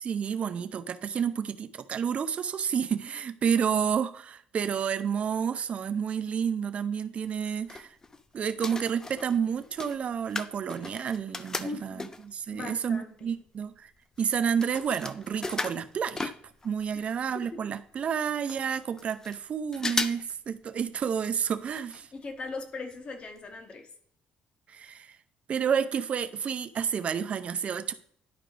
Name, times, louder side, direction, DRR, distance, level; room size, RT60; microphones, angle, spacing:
voice 1, 0.0-7.9 8.3-13.9 14.2-16.3 16.6-22.1 24.7-25.2 25.5-27.9, right 7 dB, 45° right, 0.6 m, -30 dB
sound 1, 7.3-8.2 8.5-12.4 13.0-13.1 13.3-16.9 17.2-17.3 17.5-17.6 18.1-18.2 18.5-19.4 19.7-20.3 20.6-20.7 21.7-22.0 22.3-22.4 22.9-23.0 23.4-23.5, left 3 dB, 20° left, 0.5 m, -36 dB
voice 2, 11.6-12.1 12.5-13.3 16.9-17.1 22.1-23.9, left 3 dB, 40° left, 1.4 m, -39 dB
11.0 x 4.9 x 3.3 m
cardioid pair, 125°, 3 cm